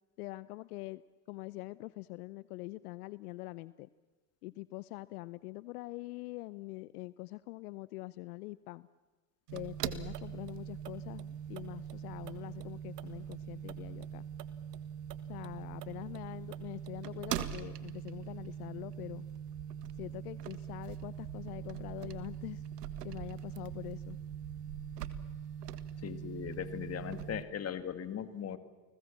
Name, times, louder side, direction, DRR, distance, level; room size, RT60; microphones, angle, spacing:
voice 1, 0.2-1.0 1.3-3.9 4.4-8.9 9.5-14.2 15.3-19.2 20.0-22.6 23.0-24.2, left 21 dB, 70° left, 18 dB, 0.8 m, -44 dB
sound 1, 9.5-27.4, right 9 dB, 80° right, 1.8 m, -42 dB
voice 2, 26.0-28.6, left 9 dB, 30° left, 11 dB, 2.3 m, -39 dB
30.0 x 20.5 x 7.3 m, 1.3 s
hypercardioid pair, 100°, 47 cm